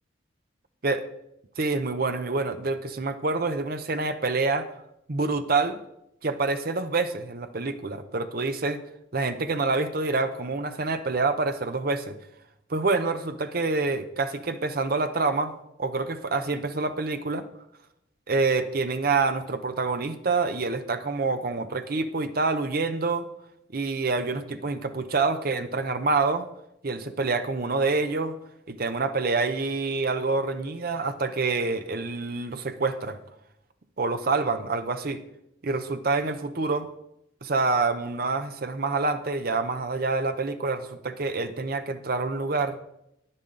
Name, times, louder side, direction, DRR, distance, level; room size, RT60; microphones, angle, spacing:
voice 1, 1.6-4.7 5.1-5.8 6.2-8.8 9.1-12.2 12.7-15.5 15.8-17.5 18.3-23.3 23.7-26.5 26.8-28.4 28.7-33.2 34.0-35.2 35.6-36.9 37.4-42.8, right 3 dB, 50° right, 9 dB, 0.7 m, -27 dB
10.5 x 9.5 x 3.8 m, 0.81 s
head